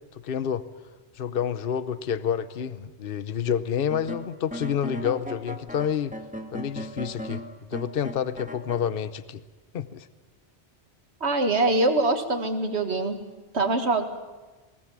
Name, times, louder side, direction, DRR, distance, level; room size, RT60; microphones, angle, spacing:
voice 1, 0.1-0.6 1.2-6.1 6.5-7.4 7.7-9.4 9.7-10.1, left 8 dB, 55° left, 14 dB, 1.0 m, -28 dB
sound 1, 3.9-8.9, equal, 5° right, 1.8 m, -37 dB
voice 2, 11.2-13.2 13.5-14.1, right 2 dB, 70° right, 6 dB, 2.1 m, -23 dB
21.0 x 18.5 x 9.0 m, 1.2 s
omnidirectional pair, 1.2 m